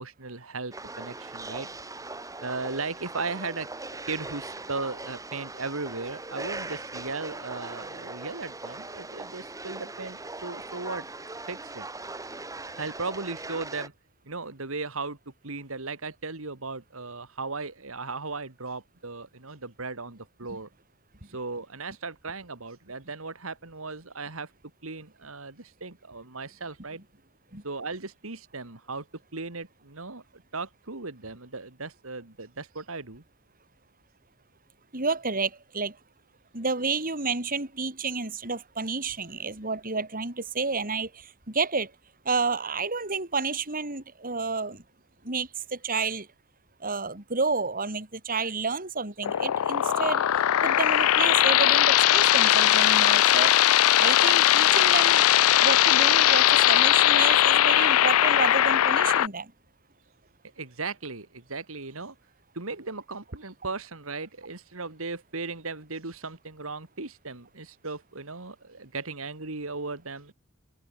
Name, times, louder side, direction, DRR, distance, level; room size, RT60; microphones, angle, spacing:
voice 1, 0.0-1.7 2.4-3.7 4.1-11.1 11.5-11.9 12.8-13.9 14.3-15.2 15.4-20.7 21.2-24.5 24.8-27.0 27.6-29.1 29.3-30.2 30.5-33.2 60.6-62.1 62.5-70.3, right 3 dB, 75° right, 2.5 m, -36 dB
sound 1, 0.7-13.9, right 2 dB, 15° right, 2.5 m, -40 dB
voice 2, 34.9-36.0 36.5-41.9 42.2-44.8 45.2-46.3 46.8-50.2 50.6-53.5 53.9-55.2 55.6-59.5, right 4 dB, 40° right, 5.1 m, -30 dB
sound 2, 49.2-59.3, left 12 dB, 85° left, 0.4 m, -20 dB
head